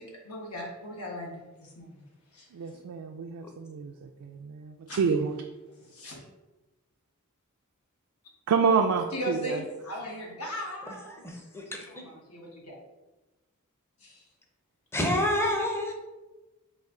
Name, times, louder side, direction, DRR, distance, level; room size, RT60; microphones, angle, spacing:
voice 1, 0.0-2.0 2.3-2.8 4.9-5.0 5.9-6.2 9.1-11.2 11.9-12.8 14.0-14.2, left 1 dB, 70° left, -1 dB, 1.1 m, -38 dB
voice 2, 2.5-5.4 8.5-9.1, right 5 dB, 75° right, 4 dB, 0.3 m, -27 dB
voice 3, 11.1-11.8 14.9-15.9, left 1 dB, 10° left, 1 dB, 0.6 m, -28 dB
4.2 x 2.5 x 3.6 m, 1.1 s
head